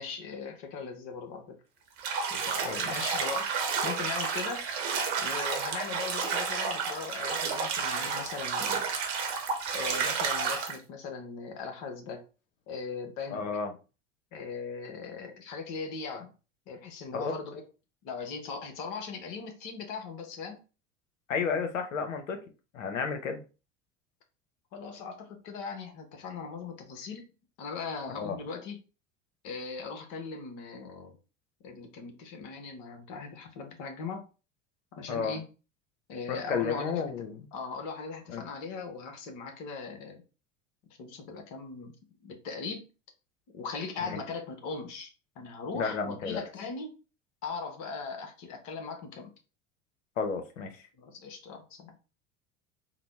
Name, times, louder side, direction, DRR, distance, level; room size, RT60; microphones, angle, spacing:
voice 1, 0.0-1.6 2.3-3.5 3.8-4.7 5.2-8.9 9.7-12.2 12.7-13.5 14.3-16.3 16.7-17.6 18.0-20.6 24.7-27.3 27.6-28.8 29.4-31.2 31.6-34.3 34.9-35.5 36.1-37.3 37.5-40.2 41.0-41.9 42.2-42.9 43.5-45.1 45.4-47.0 47.4-49.3 51.0-51.9, left 5 dB, 50° left, 1.0 m, -39 dB
Bathtub (filling or washing), 2.0-10.8, right 5 dB, 60° right, 0.9 m, -31 dB
voice 2, 2.6-3.0 13.3-13.7 17.1-17.3 21.3-22.4 22.7-23.4 28.2-28.4 35.1-35.4 36.3-37.5 38.3-38.4 44.1-44.2 45.7-46.4 50.2-50.8, left 5 dB, 80° left, 0.7 m, -32 dB
3.9 x 2.0 x 3.2 m
figure-of-eight pair, 70°, 38 cm